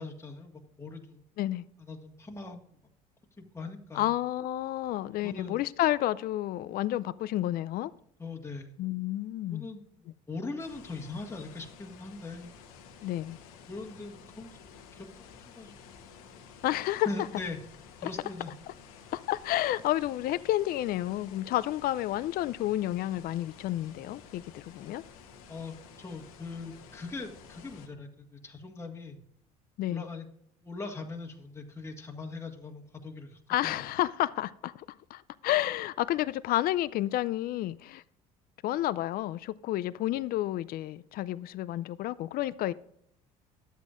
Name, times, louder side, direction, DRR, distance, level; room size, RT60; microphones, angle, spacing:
voice 1, 0.0-1.2 1.8-2.8 3.4-4.1 5.2-5.6 8.2-8.7 9.4-12.5 13.7-14.6 14.9-15.8 17.0-17.6 18.0-18.5 25.5-29.2 29.9-30.3 30.6-33.9, left 3 dB, 15° left, 1.7 m, -41 dB
voice 2, 3.9-7.9 8.8-9.7 13.0-13.4 16.6-17.1 19.1-25.0 29.8-30.0 33.5-34.9 35.1-38.0 38.6-42.7, left 14 dB, 55° left, 0.5 m, -30 dB
sound 1, 10.6-27.9, left 6 dB, 85° left, 1.2 m, -52 dB
12.0 x 8.3 x 2.5 m
hypercardioid pair, 70°, 18 cm